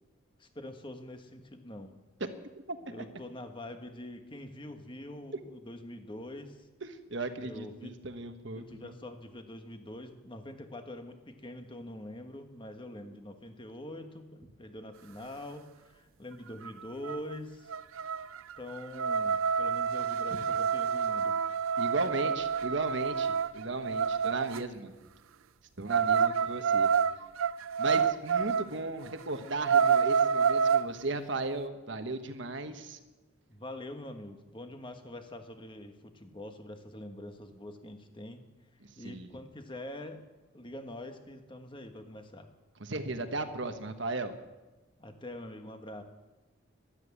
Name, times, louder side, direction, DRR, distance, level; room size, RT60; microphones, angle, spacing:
voice 1, 0.4-1.9 2.8-6.7 7.4-7.9 8.5-17.7 18.6-21.3 33.5-38.4 38.9-40.2 40.5-42.5 45.0-46.0, left 1 dB, 25° left, 6 dB, 1.4 m, -44 dB
voice 2, 6.8-8.9 21.8-24.9 25.8-26.9 27.8-33.0 38.8-39.3 42.8-44.3, right 2 dB, 60° right, 8 dB, 1.3 m, -36 dB
sound 1, 16.7-16.8 17.0-17.3 17.7-24.6 25.9-28.7 29.1-29.2 29.5-30.9, right 6 dB, 80° right, 0.5 m, -28 dB
13.0 x 12.0 x 8.4 m, 1.1 s
head